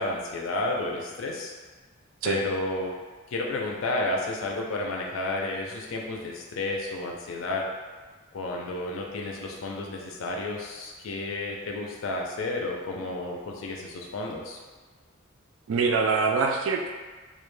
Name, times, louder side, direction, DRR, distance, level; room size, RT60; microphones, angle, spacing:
voice 1, 0.0-1.5 2.2-2.9 3.3-7.7 8.3-14.6, left 2 dB, 90° left, -1 dB, 0.4 m, -31 dB
voice 2, 15.7-16.9, right 4 dB, 80° right, 3 dB, 0.3 m, -24 dB
2.3 x 2.1 x 3.1 m, 1.4 s
head